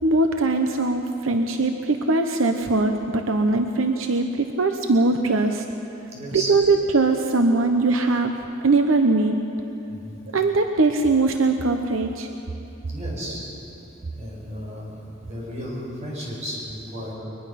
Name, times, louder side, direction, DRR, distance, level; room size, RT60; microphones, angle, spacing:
voice 1, 0.0-5.6 6.3-8.3 8.6-9.4 10.3-12.3, right 3 dB, 80° right, 5 dB, 0.9 m, -21 dB
voice 2, 6.1-6.6 9.9-10.2 12.9-13.5 14.1-17.1, equal, 35° right, -3 dB, 5.7 m, -34 dB
22.0 x 20.5 x 5.8 m, 2.9 s
head